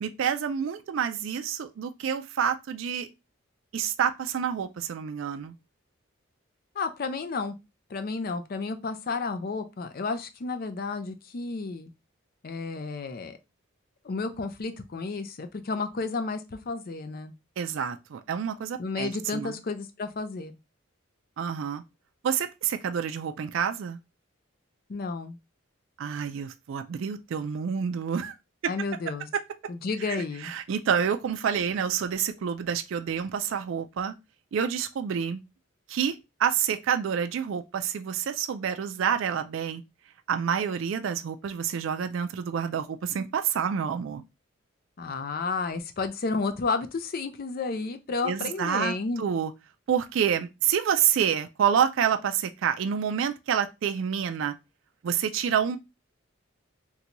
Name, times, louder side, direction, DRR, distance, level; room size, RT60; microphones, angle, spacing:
voice 1, 0.0-3.1 3.7-5.5 17.6-19.5 21.4-21.8 22.2-24.0 26.0-28.3 28.6-28.7 30.1-30.2 30.4-34.1 34.5-35.4 35.9-39.8 40.3-44.2 48.2-49.5 49.9-54.5 55.0-55.8, right 8 dB, 65° right, 0.3 m, -28 dB
voice 2, 6.8-7.5 7.9-11.9 12.4-13.4 14.0-17.3 18.8-20.5 24.9-25.4 28.7-29.3 29.7-30.5 45.0-49.2, left 4 dB, 45° left, 0.4 m, -32 dB
3.8 x 2.2 x 2.9 m
head